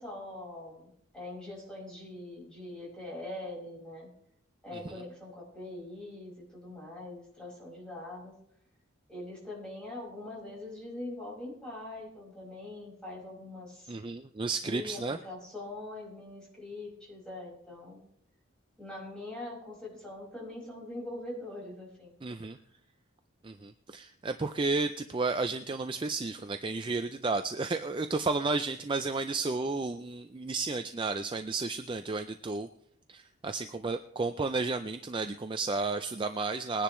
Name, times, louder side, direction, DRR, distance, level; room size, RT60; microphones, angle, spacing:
voice 1, 0.0-4.1 4.6-8.4 9.1-13.9 14.6-18.0 18.8-22.2 22.5-22.6, left 2 dB, 5° left, -5 dB, 5.2 m, -43 dB
voice 2, 13.9-15.2 22.2-22.6 23.4-32.7 33.1-36.8, right 3 dB, 25° right, 8 dB, 0.4 m, -32 dB
21.5 x 10.0 x 3.1 m, 0.73 s
head